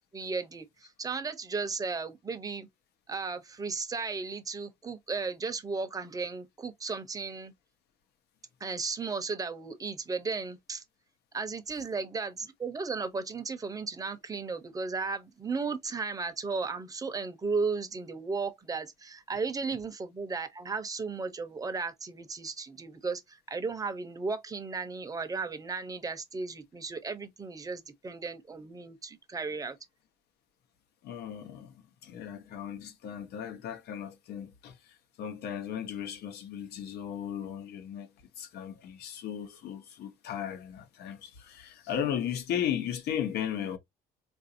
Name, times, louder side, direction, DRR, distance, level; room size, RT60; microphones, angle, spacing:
voice 1, 0.1-2.7 3.1-7.5 8.6-10.8 11.3-29.8, right 4 dB, 20° right, 0.7 m, -35 dB
voice 2, 31.0-31.8 32.0-38.1 38.4-43.8, left 9 dB, 75° left, 0.9 m, -36 dB
3.8 x 2.6 x 2.7 m
cardioid pair, 110°, 17 cm